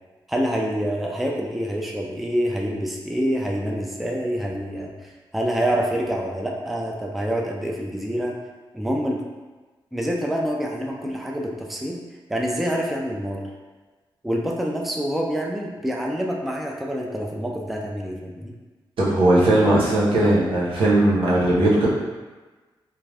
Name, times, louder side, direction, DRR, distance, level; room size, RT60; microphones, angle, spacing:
voice 1, 0.3-8.4 8.7-9.2 9.9-12.0 12.3-13.4 14.2-18.5, equal, ahead, -1 dB, 0.3 m, -26 dB
voice 2, 19.0-21.9, right 1 dB, 80° right, -7 dB, 0.9 m, -18 dB
2.4 x 2.3 x 3.3 m, 1.3 s
wide cardioid pair, 110°, 9 cm